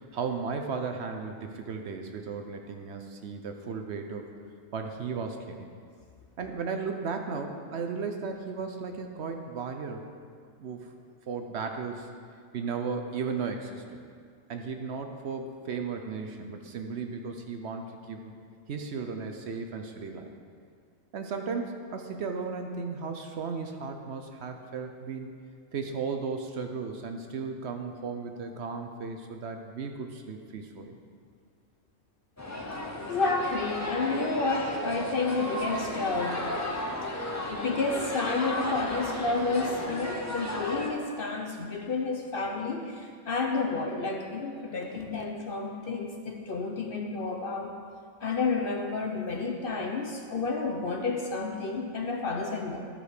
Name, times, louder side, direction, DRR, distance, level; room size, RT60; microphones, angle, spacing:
voice 1, 0.0-4.3 4.7-5.7 6.4-10.0 10.6-10.9 11.3-12.1 12.5-14.0 14.5-18.3 18.7-20.3 21.1-25.3 25.7-31.0, right 5 dB, 60° right, 5 dB, 0.9 m, -35 dB
sound 1, 32.4-40.9, left 1 dB, 15° left, 0.6 m, -34 dB
voice 2, 33.1-36.4 37.0-47.7 48.2-52.8, left 3 dB, 55° left, 2 dB, 0.8 m, -30 dB
12.5 x 5.0 x 4.8 m, 2.2 s
omnidirectional pair, 1.4 m